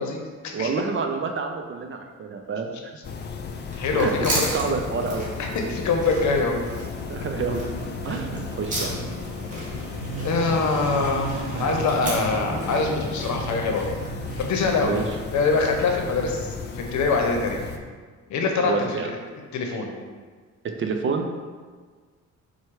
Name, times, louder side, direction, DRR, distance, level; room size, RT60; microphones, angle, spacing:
voice 1, 0.0-0.7 3.8-4.4 5.4-6.6 10.2-13.9 14.4-14.9 15.3-17.6 18.3-19.2 19.5-19.9, left 3 dB, 70° left, 2 dB, 0.8 m, -24 dB
voice 2, 0.5-2.9 3.9-5.3 7.1-7.6 8.0-9.0 14.8-15.1 18.6-19.1 20.8-21.3, right 5 dB, 40° right, 4 dB, 0.5 m, -28 dB
sound 1, 3.0-17.8, left 5 dB, 35° left, 0.4 m, -35 dB
sound 2, 3.6-15.9, right 1 dB, 25° right, 1.3 m, -35 dB
sound 3, 4.8-16.1, right 2 dB, 85° right, 0.7 m, -37 dB
4.5 x 2.2 x 4.5 m, 1.5 s
cardioid pair, 90°, 30 cm